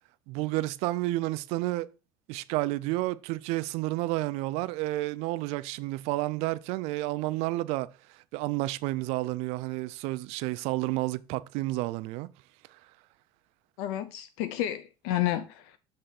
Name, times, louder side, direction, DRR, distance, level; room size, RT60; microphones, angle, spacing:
voice 1, 0.3-1.9 2.3-7.9 8.3-12.3, right 19 dB, 60° right, 0.4 m, -30 dB
voice 2, 13.8-15.8, left 13 dB, 75° left, 0.5 m, -31 dB
6.5 x 3.4 x 5.8 m
cardioid pair, 165°, 13 cm